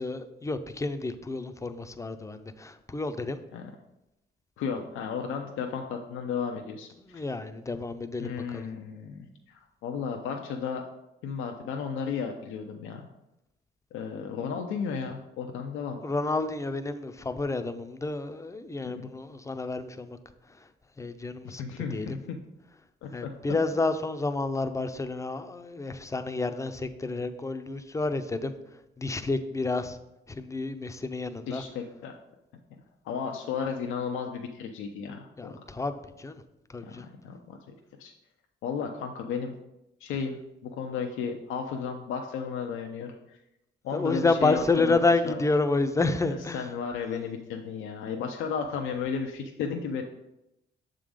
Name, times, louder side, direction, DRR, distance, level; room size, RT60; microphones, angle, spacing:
voice 1, 0.0-3.4 7.0-8.7 16.0-20.2 21.0-21.6 21.9-22.1 23.1-28.5 29.0-30.0 30.3-31.6 35.4-36.4 36.7-37.0 43.9-46.7, left 3 dB, 15° left, 9 dB, 0.5 m, -29 dB
voice 2, 4.6-7.2 8.2-10.8 11.2-13.1 13.9-16.0 18.9-19.1 21.4-22.4 23.0-23.3 31.5-32.2 33.0-35.6 36.8-37.6 38.0-38.1 38.6-39.5 40.0-43.4 43.8-45.4 46.2-50.0, left 6 dB, 90° left, 3 dB, 0.6 m, -34 dB
6.9 x 3.8 x 4.9 m, 0.89 s
cardioid pair, 90°, 20 cm